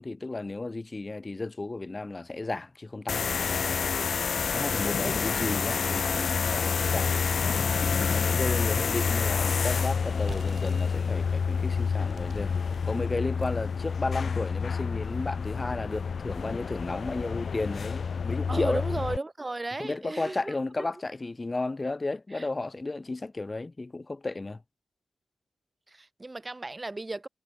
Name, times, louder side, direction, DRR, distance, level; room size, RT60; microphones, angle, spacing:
voice 1, 0.0-3.2 4.5-7.1 7.8-12.5 12.8-18.8 19.8-24.6, left 2 dB, 30° left, 5.7 m, -33 dB
sound 1, 3.1-19.2, left 5 dB, 65° left, 0.3 m, -28 dB
sound 2, 9.8-13.8, right 6 dB, 65° right, 3.2 m, -51 dB
voice 2, 18.5-20.9 22.3-22.5 25.9-27.3, right 2 dB, 30° right, 1.9 m, -35 dB
cardioid pair, 50°, 0 cm